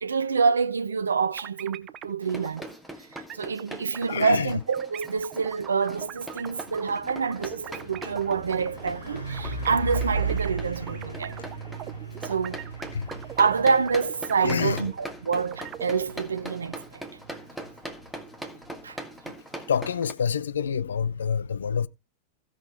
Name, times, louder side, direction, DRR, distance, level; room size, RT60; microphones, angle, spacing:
voice 1, 0.0-2.7 3.3-11.3 12.2-12.6 13.4-17.0 18.8-19.0, right 5 dB, 70° right, 0.6 m, -27 dB
sound 1, 1.4-2.1 2.4-2.6 3.2-4.4 4.7-10.5 10.9-15.1 15.4-16.0, right 11 dB, 30° right, 0.7 m, -41 dB
sound 2, 2.2-20.1, right 1 dB, ahead, 1.8 m, -42 dB
voice 2, 4.1-4.6 12.9-13.1 14.4-14.9 19.3-19.4 19.7-21.9, left 7 dB, 70° left, 0.5 m, -27 dB
Truck, 5.8-6.1 6.4-19.0, right 3 dB, 85° left, 2.1 m, -37 dB
16.5 x 6.3 x 3.4 m
figure-of-eight pair, 90°, 0 cm